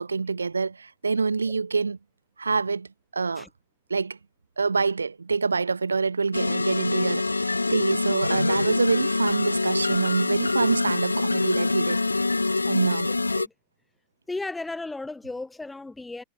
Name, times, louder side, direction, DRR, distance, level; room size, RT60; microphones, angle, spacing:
voice 1, 0.0-2.0 2.4-2.9 3.1-3.5 3.9-4.2 4.6-12.0 12.7-13.1, right 4 dB, 75° right, 4.7 m, -26 dB
sound 1, 6.3-13.5, left 3 dB, 80° left, 1.1 m, -25 dB
voice 2, 14.3-16.2, left 2 dB, 10° left, 3.3 m, -35 dB
figure-of-eight pair, 90°, 0 cm